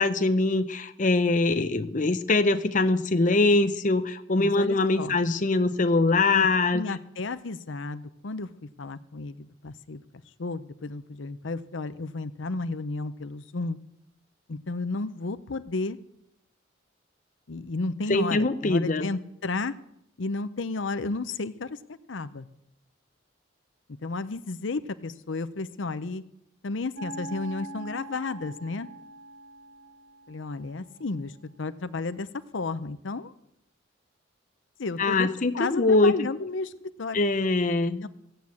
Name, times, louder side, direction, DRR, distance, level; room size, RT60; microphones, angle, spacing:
voice 1, 0.0-6.8 18.1-19.1 35.0-36.1 37.1-38.1, left 3 dB, 40° left, 9 dB, 0.7 m, -23 dB
voice 2, 4.3-5.2 6.3-6.5 6.7-8.5 8.8-10.0 10.4-13.8 14.5-16.0 17.5-19.7 20.2-21.8 22.1-22.5 24.0-26.2 26.6-28.9 30.3-33.3 34.8-37.2 38.0-38.1, left 3 dB, 75° left, 12 dB, 0.7 m, -32 dB
sound 1, 27.0-31.2, right 2 dB, 80° right, 1.5 m, -43 dB
15.5 x 8.0 x 8.5 m, 0.78 s
head